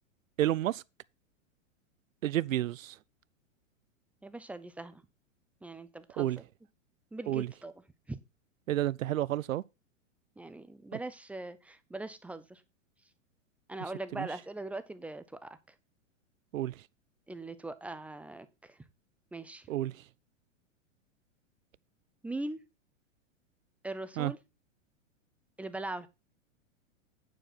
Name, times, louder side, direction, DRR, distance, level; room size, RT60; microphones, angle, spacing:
voice 1, 0.4-0.8 2.2-2.9 6.2-6.4 7.3-7.5 8.7-9.6 14.2-14.3 16.5-16.7 19.7-19.9 24.2-24.3, right 13 dB, 85° right, 0.5 m, -30 dB
voice 2, 4.2-5.0 5.6-6.3 7.1-7.7 8.1-8.2 10.4-12.6 13.7-15.5 17.3-18.7 19.3-19.6 22.2-22.6 23.8-24.4 25.6-26.1, right 2 dB, 5° right, 0.4 m, -40 dB
9.2 x 4.8 x 5.9 m
hypercardioid pair, 110°, 39 cm